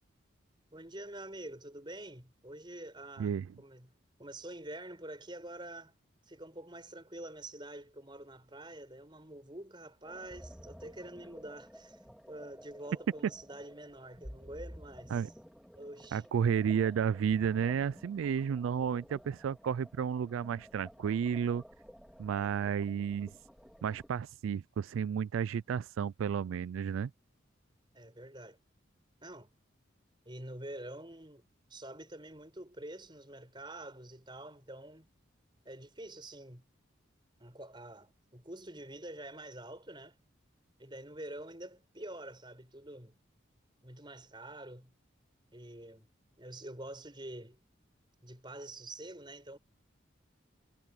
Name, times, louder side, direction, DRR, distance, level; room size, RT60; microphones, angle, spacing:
voice 1, 0.7-3.9 4.2-5.9 6.3-12.0 12.3-15.3 15.7-16.2 22.4-22.5 27.9-28.6 29.2-29.5 30.2-31.4 31.7-35.1 35.6-36.7 37.4-40.2 40.8-43.2 43.8-44.9 45.5-46.1 46.4-47.6 48.2-49.6, right 1 dB, 25° right, 6.8 m, -47 dB
sound 1, 10.0-24.1, equal, ahead, 2.9 m, -53 dB
voice 2, 16.1-21.6 22.2-23.3 23.8-27.1, right 7 dB, 90° right, 0.3 m, -32 dB
head